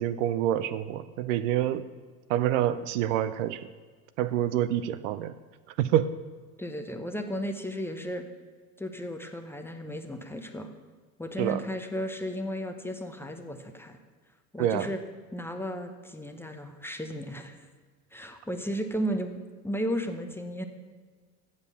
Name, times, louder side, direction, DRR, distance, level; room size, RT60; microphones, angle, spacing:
voice 1, 0.0-1.9 2.3-3.7 4.2-5.3 5.8-6.1 11.4-11.6 14.6-14.9, right 11 dB, 55° right, 13 dB, 0.5 m, -27 dB
voice 2, 6.6-8.2 8.8-10.7 11.2-14.0 14.5-15.0 15.3-17.7 18.1-19.3 19.6-20.6, equal, 5° left, 6 dB, 0.6 m, -34 dB
7.9 x 7.4 x 6.8 m, 1.5 s
hypercardioid pair, 85°, 46 cm